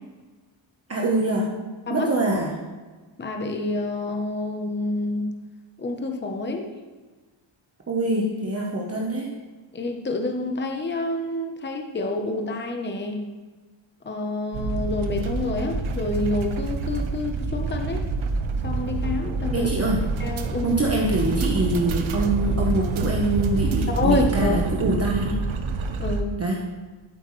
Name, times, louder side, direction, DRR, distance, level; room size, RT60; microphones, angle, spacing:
voice 1, 0.9-1.6 1.9-2.6 7.9-9.4 19.5-20.1 20.6-25.4 26.4-26.6, right 2 dB, 30° right, -2 dB, 1.1 m, -24 dB
voice 2, 3.2-5.3 5.8-6.7 9.7-13.2 14.0-18.0 18.6-19.7 20.2-20.8 23.9-24.5 26.0-26.3, left 2 dB, 20° left, 3 dB, 0.9 m, -28 dB
sound 1, 14.5-26.2, right 3 dB, 75° right, 1.0 m, -27 dB
12.5 x 8.0 x 3.2 m, 1.3 s
wide cardioid pair, 120°, 48 cm